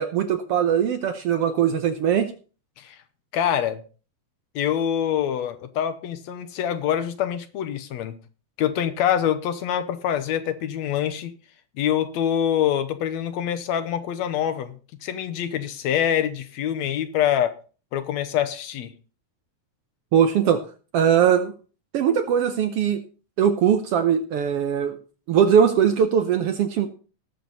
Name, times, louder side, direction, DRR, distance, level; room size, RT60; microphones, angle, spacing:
voice 1, 0.0-2.3 20.1-20.6 20.9-21.5 21.9-23.0 23.4-25.0 25.3-26.9, right 8 dB, 70° right, 8 dB, 1.5 m, -20 dB
voice 2, 3.3-3.8 4.6-8.2 8.6-11.3 11.8-14.8 15.0-17.6 17.9-18.9, left 10 dB, 70° left, 9 dB, 2.0 m, -25 dB
18.0 x 6.8 x 4.0 m, 0.37 s
omnidirectional pair, 3.3 m